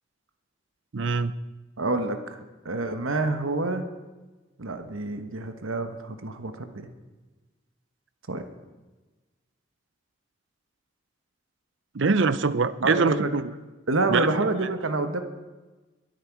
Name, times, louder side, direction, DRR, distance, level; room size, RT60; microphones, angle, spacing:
voice 1, 0.9-1.3 11.9-13.5 14.1-14.3, right 4 dB, 65° right, 15 dB, 0.6 m, -23 dB
voice 2, 1.8-2.4 2.6-3.8 4.6-6.9 8.3-8.4 12.8-13.3 13.9-15.2, right 2 dB, 85° right, 7 dB, 1.2 m, -27 dB
22.5 x 9.3 x 4.7 m, 1.2 s
head